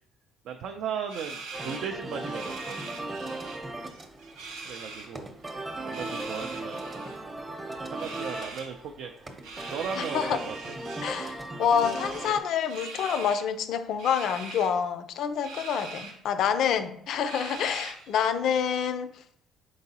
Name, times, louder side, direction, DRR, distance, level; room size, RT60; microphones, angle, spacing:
voice 1, 0.4-3.0 4.7-5.4 5.8-6.9 7.8-9.4 9.7-10.6, right 7 dB, 70° right, 5 dB, 0.3 m, -37 dB
sound 1, 1.1-3.6 3.9-5.1 5.8-7.2 8.0-8.7 9.4-11.3 11.8-13.4 14.0-14.7 15.4-16.1 16.6-16.7 17.3-18.1, right 4 dB, 90° right, 0.7 m, -42 dB
sound 2, 1.5-12.4, right 2 dB, 25° right, 0.7 m, -37 dB
voice 2, 10.0-10.4 11.0-19.1, left 8 dB, 70° left, 10 dB, 0.4 m, -27 dB
4.6 x 3.8 x 2.8 m, 0.66 s
supercardioid pair, 75°, 0 cm